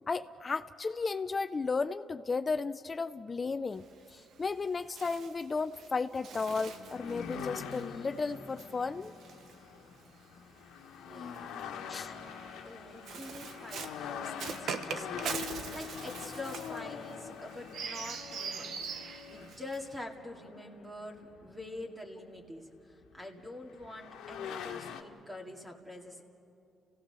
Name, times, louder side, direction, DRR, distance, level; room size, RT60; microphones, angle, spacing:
voice 1, 0.1-3.8 4.1-9.1 11.9-12.1, left 4 dB, 35° left, 11 dB, 0.5 m, -34 dB
Bird, 3.7-10.3 11.2-20.0, right 6 dB, 70° right, 1.1 m, -43 dB
sound 1, 6.5-21.8 23.2-23.3 23.7-25.0, left 7 dB, 90° left, 1.3 m, -44 dB
voice 2, 11.0-18.9 19.3-26.3, left 1 dB, 10° right, 1 dB, 2.3 m, -46 dB
30.0 x 16.5 x 6.8 m, 2.7 s
cardioid pair, 90°, 0 cm